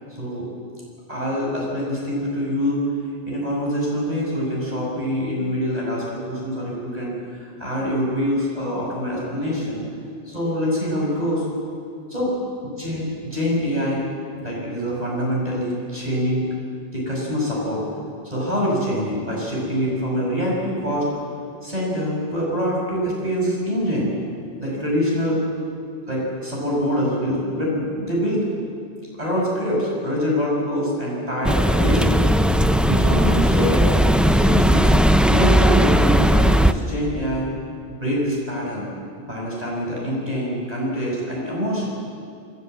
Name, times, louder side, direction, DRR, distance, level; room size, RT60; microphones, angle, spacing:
voice 1, 0.1-0.5 1.1-2.8 3.2-9.8 10.3-11.5 12.1-12.3 12.8-14.0 14.4-16.5 16.9-17.8 18.2-21.1 21.6-24.1 24.6-25.5 26.1-28.5 29.2-32.3 32.9-33.9 34.3-34.9 35.2-37.5 37.9-38.9 39.2-41.9, equal, 40° right, -4 dB, 5.5 m, -25 dB
sound 1, 31.4-36.7, equal, ahead, 0.3 m, -17 dB
28.0 x 12.5 x 7.7 m, 2.6 s
omnidirectional pair, 1.1 m